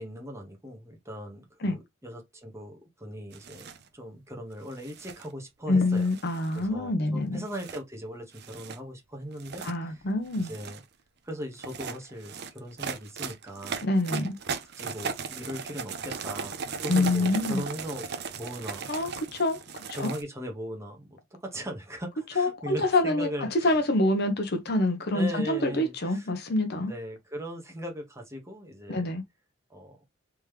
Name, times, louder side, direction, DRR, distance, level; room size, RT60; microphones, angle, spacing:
voice 1, 0.0-3.7 3.9-6.1 6.5-10.1 10.4-10.8 11.2-13.8 14.7-18.1 18.3-18.9 19.9-23.7 25.1-26.3 26.8-29.1 29.7-30.0, equal, 15° right, 1.1 m, -39 dB
sound 1, 3.3-3.8 4.7-5.3 6.0-6.7 7.5-7.8 8.3-8.8 9.3-9.8 10.3-10.8 11.5-20.2, right 5 dB, 55° right, 0.6 m, -37 dB
voice 2, 5.7-7.4 9.6-10.5 13.8-14.4 16.9-17.6 18.9-20.1 22.4-26.9 28.9-29.2, left 2 dB, 55° left, 0.8 m, -26 dB
3.5 x 3.1 x 3.2 m
head